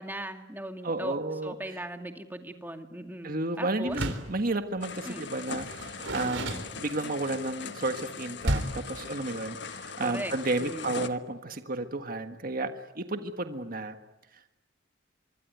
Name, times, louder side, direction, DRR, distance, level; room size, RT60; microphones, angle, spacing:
voice 1, 0.0-1.2 1.4-4.0 5.0-5.3 10.0-10.3 10.6-10.9, right 1 dB, 10° right, 6 dB, 2.3 m, -38 dB
voice 2, 0.8-1.5 3.2-14.0, right 2 dB, 50° right, 7 dB, 1.5 m, -32 dB
Door, 3.9-4.4 5.6-7.2 8.4-8.9, right 1 dB, 80° right, 3.8 m, -32 dB
sound 1, 4.8-11.1, left 5 dB, 65° left, 1.5 m, -40 dB
25.0 x 24.5 x 9.4 m, 0.97 s
head